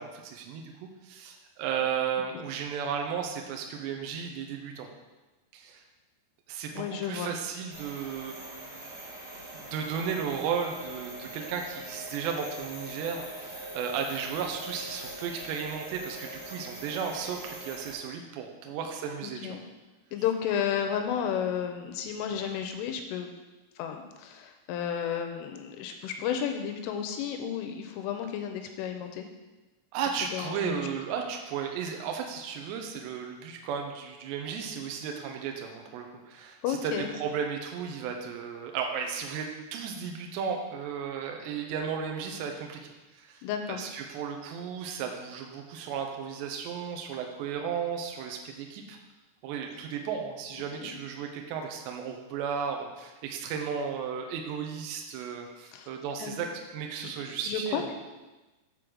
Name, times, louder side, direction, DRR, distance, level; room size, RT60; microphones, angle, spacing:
voice 1, 0.0-4.9 5.5-5.8 6.5-8.9 9.5-19.6 29.9-42.8 43.1-43.4 43.7-49.0 49.4-57.9, right 7 dB, 80° right, 3 dB, 2.6 m, -34 dB
voice 2, 6.8-7.3 19.2-19.6 20.1-23.3 23.8-29.3 30.3-30.9 36.6-37.1 43.4-43.8 50.8-51.0 55.7-55.9 56.2-56.5 57.0-57.1 57.5-58.0, left 8 dB, 85° left, 5 dB, 3.0 m, -32 dB
sound 1, 7.7-17.9, right 2 dB, 45° right, 2.3 m, -43 dB
7.5 x 5.0 x 6.2 m, 1.1 s
omnidirectional pair, 5.8 m